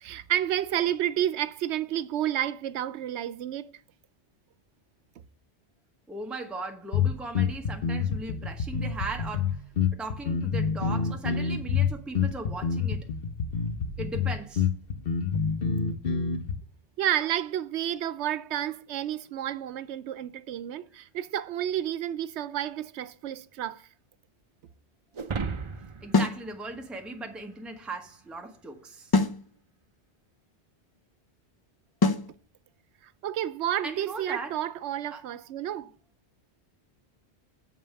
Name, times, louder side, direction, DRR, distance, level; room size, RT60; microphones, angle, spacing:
voice 1, 0.0-3.7 17.0-23.9 33.2-35.9, right 11 dB, 90° right, 0.9 m, -30 dB
voice 2, 6.1-9.6 9.9-13.1 14.0-14.7 26.0-29.1 33.8-34.5 35.1-35.2, right 3 dB, ahead, 1.0 m, -38 dB
sound 1, 6.9-16.5, left 6 dB, 60° left, 1.1 m, -27 dB
sound 2, 25.1-27.7, right 5 dB, 35° right, 0.6 m, -36 dB
sound 3, 26.1-26.4 29.1-29.4 32.0-32.3, left 3 dB, 35° left, 0.3 m, -23 dB
7.5 x 5.5 x 6.5 m
omnidirectional pair, 1.1 m